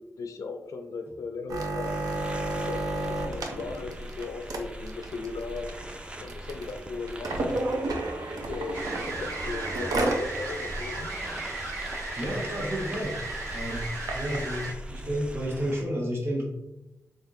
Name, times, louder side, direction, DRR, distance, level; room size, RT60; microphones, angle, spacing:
voice 1, 0.0-2.1 2.5-5.7 6.2-7.5 8.3-11.1, left 4 dB, 70° left, 5 dB, 0.4 m, -38 dB
sound 1, 1.5-10.3 10.7-10.8 11.1-11.4 11.8-11.9 12.2-12.5 13.1-14.4 15.1-15.2, right 2 dB, 85° right, 0.6 m, -32 dB
sound 2, 1.8-15.8, right 1 dB, 15° right, 0.4 m, -41 dB
sound 3, 8.7-14.7, right 2 dB, 70° right, 1.1 m, -36 dB
voice 2, 11.8-13.2 13.5-13.9 14.1-16.4, equal, 45° right, -2 dB, 1.1 m, -31 dB
3.7 x 3.5 x 2.7 m, 0.93 s
wide cardioid pair, 90°, 6 cm